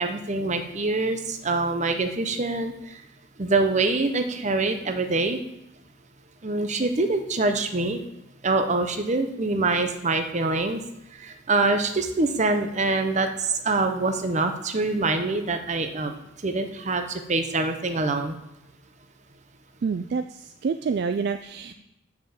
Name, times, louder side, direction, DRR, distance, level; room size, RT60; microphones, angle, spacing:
voice 1, 0.0-2.7 3.4-5.4 6.4-8.0 8.4-10.8 11.2-16.2 16.4-18.3, right 3 dB, 40° right, 7 dB, 0.8 m, -25 dB
voice 2, 19.8-21.7, right 5 dB, 55° right, 9 dB, 0.3 m, -28 dB
6.7 x 5.9 x 7.2 m, 0.87 s
head